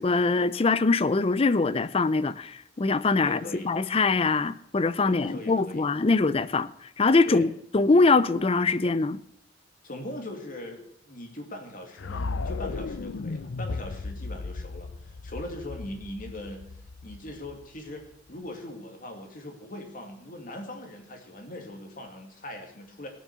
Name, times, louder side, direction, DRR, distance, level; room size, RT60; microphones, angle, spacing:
voice 1, 0.0-3.4 3.6-6.7 7.0-7.5 7.7-9.2, left 3 dB, 30° left, 0.5 m, -23 dB
voice 2, 3.2-3.7 5.0-6.2 7.2-7.5 9.8-16.6 17.0-23.1, left 1 dB, 45° left, 2.4 m, -40 dB
sound 1, 12.0-18.1, left 3 dB, 85° left, 0.6 m, -36 dB
17.5 x 6.3 x 6.8 m
head